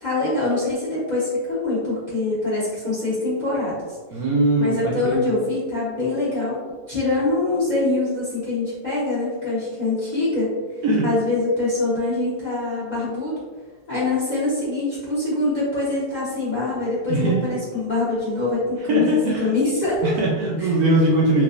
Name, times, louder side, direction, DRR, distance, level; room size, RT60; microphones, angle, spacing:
voice 1, 0.0-3.8 4.6-6.6 6.9-10.5 11.0-13.3 13.9-20.1, left 2 dB, 30° left, -9 dB, 0.8 m, -24 dB
voice 2, 4.1-5.2 10.8-11.1 17.1-17.4 18.9-19.5 20.0-21.4, right 1 dB, 70° right, -3 dB, 1.0 m, -20 dB
3.3 x 3.0 x 2.4 m, 1.4 s
omnidirectional pair, 1.9 m